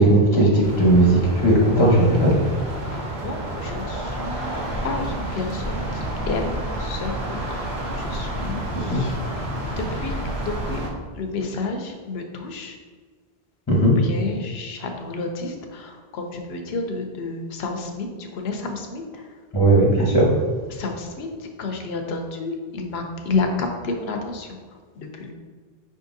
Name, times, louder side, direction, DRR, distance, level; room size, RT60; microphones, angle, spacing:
voice 1, 0.0-2.3 8.9-9.0 13.7-13.9 19.5-20.3, right 1 dB, 25° left, -4 dB, 0.9 m, -17 dB
sound 1, 0.6-10.9, right 1 dB, 90° right, 1.1 m, -30 dB
voice 2, 2.8-4.5 4.8-7.5 7.9-10.8 11.2-12.8 13.8-19.3 20.7-24.6 24.9-25.3, left 3 dB, 80° left, 4 dB, 0.9 m, -31 dB
5.5 x 3.7 x 2.6 m, 1.5 s
omnidirectional pair, 1.1 m